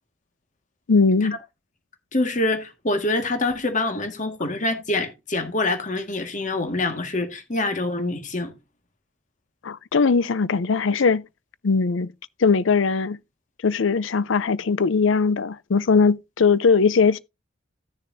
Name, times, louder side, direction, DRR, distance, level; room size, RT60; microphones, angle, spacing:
voice 1, 0.9-1.4 9.6-11.2 11.6-12.1 12.4-13.2 13.6-17.2, left 5 dB, 85° left, 0.6 m, -20 dB
voice 2, 2.1-8.5, left 2 dB, 40° left, 1.8 m, -25 dB
15.0 x 6.8 x 2.7 m
head